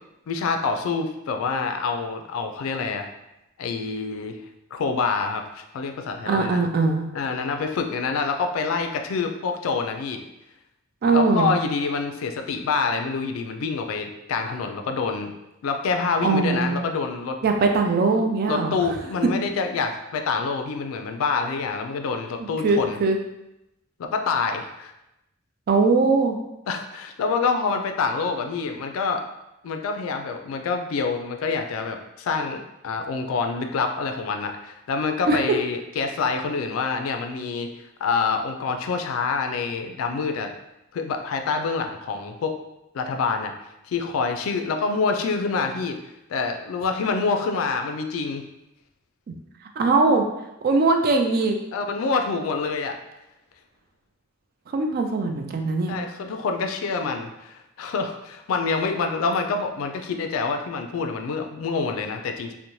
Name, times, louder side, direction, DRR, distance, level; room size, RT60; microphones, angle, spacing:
voice 1, 0.3-3.1 3.6-4.4 4.7-6.6 7.1-10.2 11.1-15.3 15.6-17.4 18.1-23.0 24.0-24.9 26.7-29.2 29.6-37.7 38.0-40.5 40.9-42.6 42.9-43.5 43.8-46.0 46.3-48.4 51.7-53.0 55.9-62.5, left 4 dB, 85° left, 6 dB, 0.3 m, -26 dB
voice 2, 6.3-7.1 11.0-11.5 16.2-16.9 17.4-18.8 22.4-23.2 25.7-26.4 35.3-35.4 49.8-50.2 50.6-51.6 54.7-56.0, right 3 dB, 45° right, 4 dB, 0.3 m, -21 dB
2.6 x 2.0 x 3.0 m, 0.90 s
head